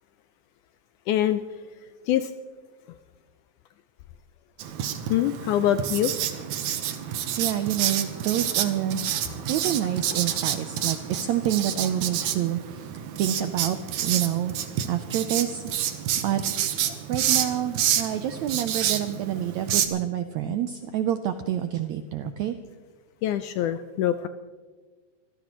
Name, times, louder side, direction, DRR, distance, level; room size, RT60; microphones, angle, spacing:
voice 1, 1.1-1.4 2.1-2.3 5.1-6.1 23.2-24.3, left 11 dB, 80° left, 10 dB, 1.8 m, -24 dB
Writing, 4.6-19.9, right 10 dB, 70° right, 2.1 m, -29 dB
voice 2, 7.4-9.1 9.4-13.8 14.0-14.5 14.9-15.6 16.2-22.6, right 11 dB, 85° right, 9 dB, 1.6 m, -28 dB
25.0 x 16.5 x 3.1 m, 1.4 s
omnidirectional pair, 4.0 m